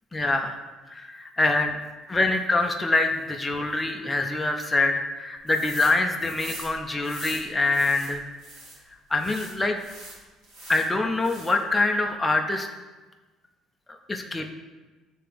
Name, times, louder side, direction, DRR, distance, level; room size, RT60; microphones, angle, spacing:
voice 1, 0.1-0.5 0.9-1.7 2.1-8.3 9.1-9.8 10.7-12.7 14.1-14.5, left 2 dB, 10° left, 3 dB, 0.4 m, -25 dB
sound 1, 5.5-5.9 6.2-8.8 9.2-10.9 11.2-11.7, right 2 dB, 50° right, 2.0 m, -42 dB
9.9 x 3.4 x 3.3 m, 1.2 s
cardioid pair, 150°, 0 cm